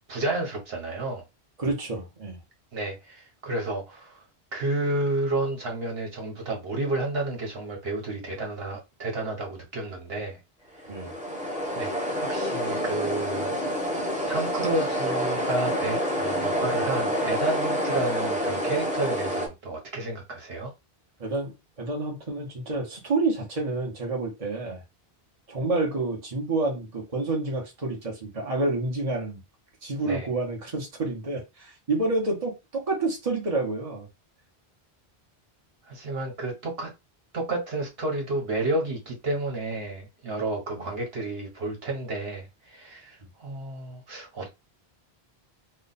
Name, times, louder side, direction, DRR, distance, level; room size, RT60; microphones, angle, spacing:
voice 1, 0.1-1.2 2.7-4.2 4.5-10.4 11.7-13.5 14.3-20.7 30.0-30.3 35.8-36.9 37.3-44.5, right 2 dB, 70° right, 1.3 m, -31 dB
voice 2, 1.6-2.4 10.9-11.1 21.2-24.8 25.5-29.4 29.8-34.1 40.7-40.9, right 2 dB, 35° right, 1.1 m, -29 dB
sound 1, 10.8-19.5, equal, 10° right, 0.8 m, -28 dB
3.1 x 2.3 x 4.0 m
omnidirectional pair, 1.1 m